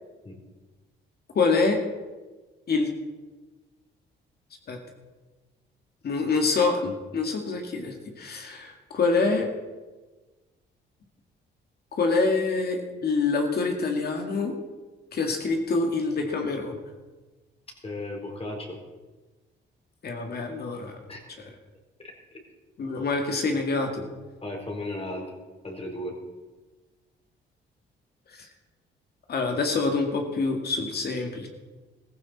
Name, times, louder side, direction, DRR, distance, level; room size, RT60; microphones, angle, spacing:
voice 1, 1.3-1.8 2.7-2.9 4.7-4.8 6.0-9.5 12.0-14.5 15.1-16.8 20.0-21.0 22.8-24.0 28.3-28.5 29.3-31.5, left 3 dB, 55° left, 3 dB, 2.2 m, -26 dB
voice 2, 17.8-18.8 21.1-21.2 24.4-25.3 25.6-26.2, left 1 dB, 30° left, 1 dB, 3.9 m, -35 dB
15.0 x 15.0 x 4.3 m, 1.3 s
cardioid pair, 90°, 20 cm